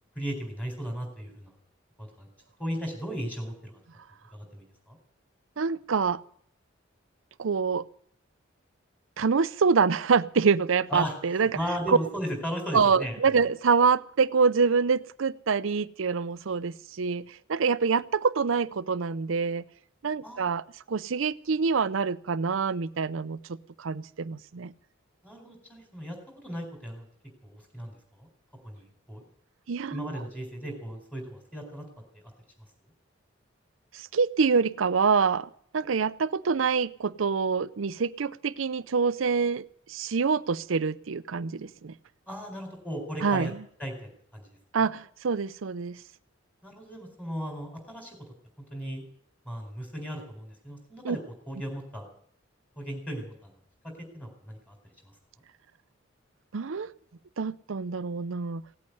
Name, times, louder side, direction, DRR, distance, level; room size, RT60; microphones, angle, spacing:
voice 1, 0.2-1.5 2.0-2.3 2.6-3.7 4.3-5.0 10.9-13.2 20.2-20.5 25.2-26.2 26.4-27.1 27.4-28.3 28.6-29.2 29.9-31.8 42.3-43.5 43.8-44.5 46.6-48.2 48.7-49.0 49.4-51.2 51.5-52.0 52.8-53.5 53.8-54.8, equal, 5° left, 3 dB, 4.2 m, -36 dB
voice 2, 5.6-6.2 7.4-7.9 9.2-11.5 11.9-12.0 12.7-19.7 20.0-23.4 23.8-24.7 29.7-30.1 33.9-39.6 39.9-41.9 43.2-43.5 44.7-46.0 51.0-51.2 56.5-56.9 57.4-58.6, right 5 dB, 80° right, 17 dB, 0.6 m, -26 dB
17.5 x 8.5 x 9.4 m, 0.63 s
head